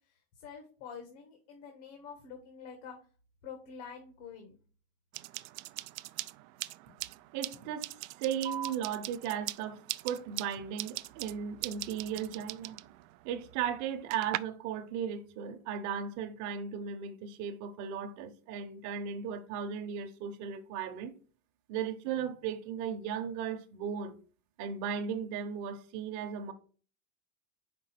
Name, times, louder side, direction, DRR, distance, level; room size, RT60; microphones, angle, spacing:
voice 1, 0.3-3.0 3.4-4.6, left 6 dB, 65° left, 1.5 m, -47 dB
sound 1, 5.1-14.4, right 20 dB, 80° right, 0.5 m, -42 dB
voice 2, 7.3-7.9 8.2-12.8 13.2-21.1 21.7-24.2 24.6-26.5, right 8 dB, 45° right, 0.9 m, -36 dB
sound 2, 8.4-15.4, right 8 dB, 10° right, 0.7 m, -50 dB
5.3 x 3.8 x 5.8 m
supercardioid pair, 150°, 41 cm